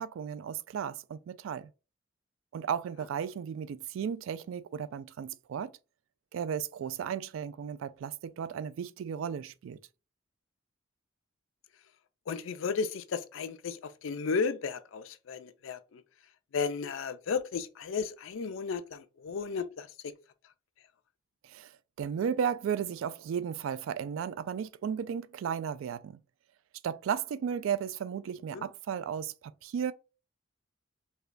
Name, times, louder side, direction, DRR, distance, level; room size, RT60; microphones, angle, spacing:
voice 1, 0.0-1.7 2.5-5.7 6.3-9.8 21.4-21.7 22.0-26.2 26.8-29.9, right 8 dB, 80° right, 0.3 m, -34 dB
voice 2, 12.3-16.0 16.5-19.9 28.5-28.6, left 5 dB, 80° left, 0.4 m, -34 dB
4.8 x 2.2 x 2.5 m
head